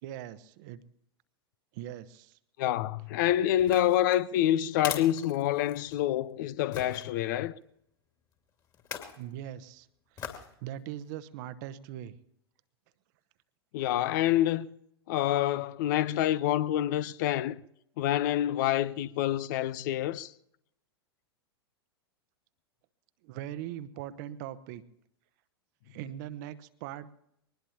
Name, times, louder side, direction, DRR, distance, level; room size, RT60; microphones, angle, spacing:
voice 1, 0.0-0.8 1.7-2.4 9.2-12.2 23.2-24.8 25.9-27.1, right 12 dB, 45° right, 1.0 m, -41 dB
voice 2, 2.6-7.6 13.7-14.7 15.1-17.6 18.0-20.3, left 12 dB, 45° left, 0.6 m, -27 dB
sound 1, 3.6-6.0 6.7-7.1 8.7-9.2 10.2-10.5 11.0-11.1, left 8 dB, 30° left, 2.4 m, -40 dB
23.0 x 19.5 x 2.9 m
figure-of-eight pair, 95°, 14 cm